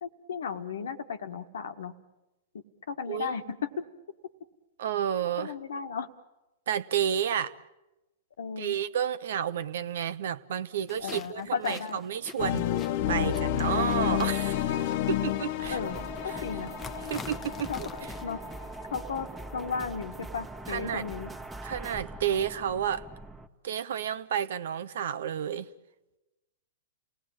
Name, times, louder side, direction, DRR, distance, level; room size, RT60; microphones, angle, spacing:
voice 1, 0.0-1.9 2.5-3.6 5.4-6.1 8.4-8.8 11.0-12.0 13.2-13.4 14.4-14.9 15.7-16.0 16.2-16.7 17.7-17.8 18.2-18.4 18.9-19.3 19.5-21.3, left 6 dB, 70° left, 8 dB, 1.5 m, -35 dB
voice 2, 4.8-5.5 6.7-7.5 8.6-12.7 13.1-14.8 15.1-15.8 16.3-16.4 17.1-18.1 20.7-21.0 21.6-23.1 23.6-25.7, right 9 dB, 65° right, 14 dB, 0.9 m, -31 dB
sound 1, 10.9-18.2, left 6 dB, 20° left, 0.9 m, -47 dB
sound 2, 12.4-19.2, left 12 dB, 50° left, 0.9 m, -30 dB
sound 3, 15.6-23.5, right 2 dB, 10° right, 1.5 m, -42 dB
29.5 x 18.5 x 8.9 m, 1.0 s
figure-of-eight pair, 105°, 0 cm